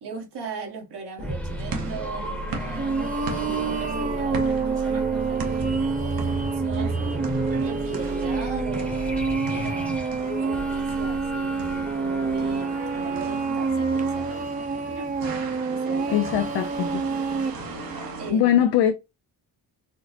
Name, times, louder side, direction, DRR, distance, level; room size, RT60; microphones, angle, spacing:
voice 1, 0.0-3.0 3.3-9.9 10.4-15.2 15.6-16.2 18.2-18.7, right 3 dB, 80° right, 1.4 m, -39 dB
sound 1, 1.2-13.9, right 1 dB, 5° left, 0.8 m, -32 dB
sound 2, 1.5-18.3, right 3 dB, 60° right, 0.9 m, -38 dB
sound 3, 2.8-17.5, right 4 dB, 20° right, 0.4 m, -28 dB
voice 2, 16.1-17.0 17.8-18.9, left 10 dB, 90° left, 0.5 m, -22 dB
4.2 x 2.1 x 2.7 m
wide cardioid pair, 135°, 39 cm